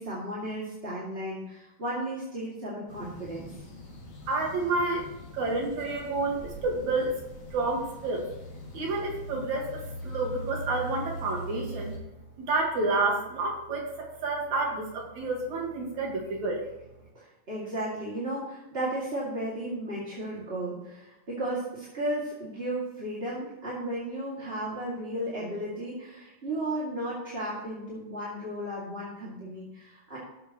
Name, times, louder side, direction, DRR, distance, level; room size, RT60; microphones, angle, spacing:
voice 1, 0.0-3.5 17.1-30.2, right 1 dB, 20° right, -7 dB, 2.1 m, -34 dB
sound 1, 2.9-12.0, equal, 55° left, 3.4 m, -42 dB
voice 2, 4.2-5.1 5.3-7.2 7.5-8.3 8.7-12.0 12.4-16.7, right 3 dB, 70° right, -1 dB, 3.0 m, -29 dB
17.5 x 7.3 x 3.0 m, 0.96 s
omnidirectional pair, 3.5 m